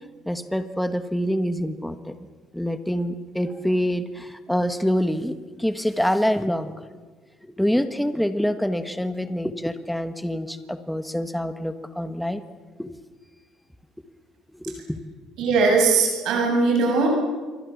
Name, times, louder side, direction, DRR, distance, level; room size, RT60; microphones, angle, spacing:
voice 1, 0.3-2.1 2.5-6.7 7.4-12.4 12.8-12.9 14.5-15.0, equal, ahead, 9 dB, 1.4 m, -26 dB
voice 2, 15.4-17.1, right 4 dB, 65° right, 1 dB, 7.6 m, -20 dB
27.5 x 24.0 x 7.3 m, 1.4 s
cardioid pair, 130°, 0 cm